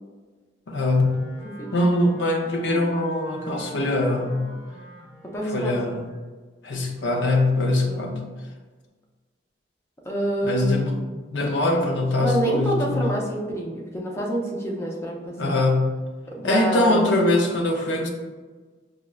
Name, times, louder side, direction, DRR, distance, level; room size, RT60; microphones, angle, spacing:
voice 1, 0.7-1.3 1.7-4.5 5.4-6.1 6.6-8.3 10.4-11.0 11.3-13.1 15.4-16.0 16.4-18.1, left 2 dB, 75° left, 2 dB, 0.5 m, -22 dB
Wind instrument woodwind instrument, 0.8-6.2, left 1 dB, 30° left, 1.1 m, -43 dB
voice 2, 5.3-5.8 7.8-8.0 10.0-10.8 12.2-15.5 16.3-17.0, right 1 dB, 15° left, -2 dB, 0.4 m, -27 dB
4.6 x 2.1 x 2.2 m, 1.4 s
head